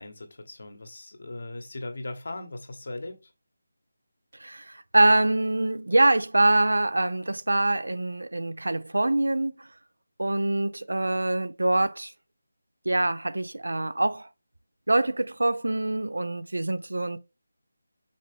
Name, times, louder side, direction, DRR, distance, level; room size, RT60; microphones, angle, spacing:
voice 1, 0.0-3.3, left 2 dB, 55° left, 1.8 m, -38 dB
voice 2, 4.4-9.7 10.2-12.1 12.8-14.3 14.9-17.2, right 2 dB, 70° right, 0.7 m, -24 dB
6.6 x 5.1 x 3.6 m
figure-of-eight pair, 160°, 0 cm